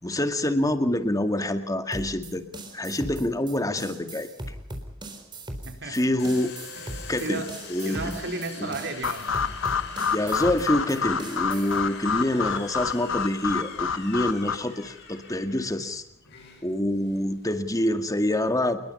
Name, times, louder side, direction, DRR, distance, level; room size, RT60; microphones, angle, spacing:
voice 1, 0.0-2.4 2.7-4.3 5.9-6.5 7.1-7.4 7.7-8.2 8.6-8.7 10.1-16.0 16.6-18.8, left 1 dB, 20° left, 8 dB, 2.1 m, -26 dB
sound 1, 1.9-11.8, right 1 dB, 25° right, 4.1 m, -39 dB
voice 2, 5.6-6.1 6.7-7.5 7.8-9.3, right 3 dB, 60° right, 5 dB, 4.4 m, -34 dB
Domestic sounds home sounds, 6.2-17.6, left 5 dB, 55° left, 5.9 m, -44 dB
sound 2, 9.0-14.5, left 6 dB, 75° left, 1.2 m, -29 dB
28.5 x 21.5 x 5.6 m, 0.71 s
head